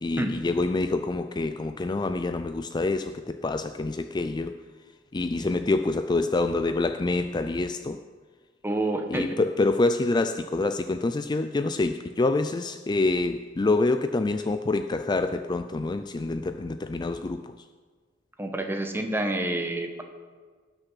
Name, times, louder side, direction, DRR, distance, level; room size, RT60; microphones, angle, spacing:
voice 1, 0.0-4.5 5.1-8.0 9.1-17.5, left 2 dB, 25° left, 9 dB, 0.4 m, -26 dB
voice 2, 8.6-9.3 18.4-20.0, right 1 dB, 10° right, 4 dB, 1.2 m, -28 dB
18.5 x 6.6 x 5.8 m, 1.5 s
head